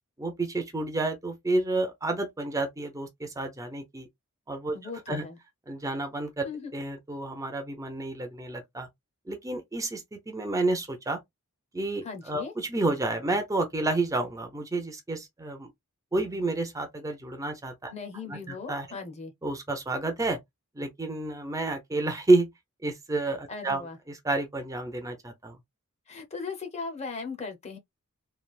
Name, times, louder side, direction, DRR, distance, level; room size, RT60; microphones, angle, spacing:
voice 1, 0.2-4.1 4.5-5.3 5.7-6.5 6.7-8.9 9.3-11.2 11.7-15.7 16.1-17.9 18.3-18.9 19.4-20.4 20.8-22.5 22.8-23.8 24.1-25.6, right 2 dB, 15° right, 0.5 m, -30 dB
voice 2, 4.7-5.4 6.4-6.7 12.0-12.5 17.9-19.3 23.5-24.0 26.1-27.8, left 4 dB, 30° left, 0.7 m, -38 dB
3.3 x 2.3 x 2.3 m
head